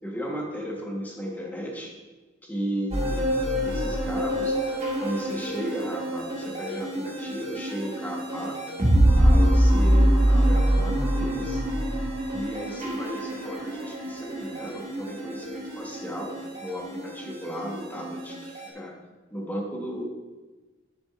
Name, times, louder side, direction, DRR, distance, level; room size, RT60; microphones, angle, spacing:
voice 1, 0.0-1.9 2.4-3.3 3.6-4.6 5.0-8.6 9.1-11.6 12.3-16.3 16.6-18.9 19.3-20.0, equal, 10° left, -1 dB, 1.3 m, -35 dB
sound 1, 2.9-18.7, equal, 35° right, 1.7 m, -25 dB
11.0 x 7.0 x 2.6 m, 1.2 s
head